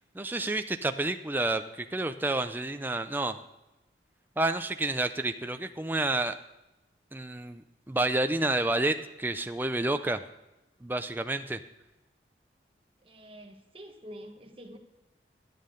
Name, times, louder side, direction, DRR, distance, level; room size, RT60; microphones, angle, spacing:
voice 1, 0.1-3.4 4.4-6.3 7.1-10.2 10.8-11.6, right 2 dB, 10° right, 8 dB, 0.4 m, -29 dB
voice 2, 13.0-14.8, equal, 30° right, 4 dB, 1.1 m, -47 dB
11.0 x 9.6 x 5.1 m, 0.97 s
head